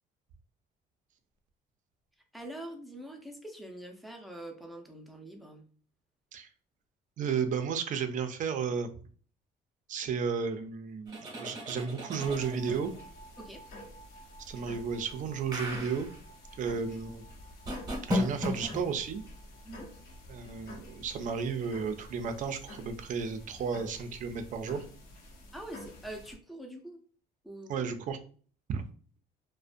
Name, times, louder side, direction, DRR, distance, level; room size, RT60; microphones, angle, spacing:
voice 1, 2.3-5.6 13.4-13.6 19.6-19.9 25.5-27.0 27.4-27.9, right 1 dB, ahead, 3 dB, 0.5 m, -44 dB
voice 2, 7.2-8.9 9.9-12.9 14.5-16.1 16.6-17.2 18.1-19.2 20.3-24.8 27.7-28.2 28.7-28.8, right 6 dB, 50° right, 8 dB, 0.4 m, -33 dB
sound 1, 11.1-13.0 15.5-16.2 17.6-18.8, left 1 dB, 20° right, 0.8 m, -34 dB
sound 2, 12.2-26.4, left 1 dB, 70° left, 0.7 m, -49 dB
2.4 x 2.1 x 2.5 m, 0.42 s
cardioid pair, 110°, 17 cm